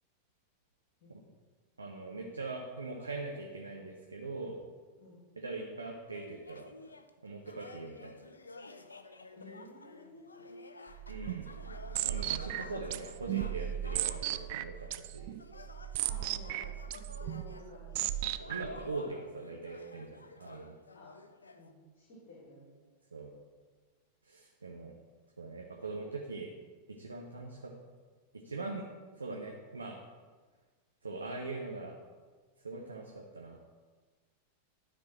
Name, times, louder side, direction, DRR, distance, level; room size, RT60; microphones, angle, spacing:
voice 1, 1.8-4.6 5.4-6.7 7.2-8.2 11.1-11.5 12.0-15.4 18.4-20.8 23.1-23.3 24.3-24.9 25.4-26.5 26.9-27.7 28.4-28.8 29.1-30.0 31.0-31.9 32.6-33.6, right 3 dB, 75° right, 0 dB, 0.9 m, -41 dB
sound 1, 6.1-7.1 7.4-21.7, left 3 dB, 75° left, 0.5 m, -52 dB
voice 2, 9.3-10.9 12.6-12.7 16.0-18.0 20.9-21.1 21.5-22.7, left 1 dB, 50° left, -6 dB, 2.6 m, -53 dB
sound 2, 10.9-18.9, right 13 dB, 50° right, 0.3 m, -37 dB
12.5 x 4.2 x 4.4 m, 1.4 s
figure-of-eight pair, 90°, 0 cm